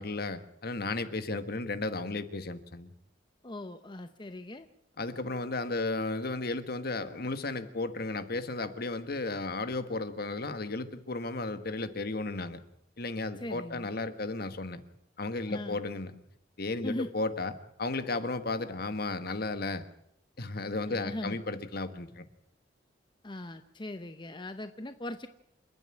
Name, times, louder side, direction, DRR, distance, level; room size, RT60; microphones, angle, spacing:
voice 1, 0.0-2.9 5.0-12.6 13.0-14.8 15.2-16.2 16.6-17.5 17.8-19.9 20.4-22.2, left 2 dB, 55° left, 11 dB, 1.4 m, -34 dB
voice 2, 3.4-4.7 13.4-13.9 15.5-15.8 16.8-17.1 20.9-21.4 23.2-25.3, left 1 dB, 25° left, 9 dB, 0.8 m, -39 dB
28.0 x 9.6 x 10.0 m, 0.77 s
head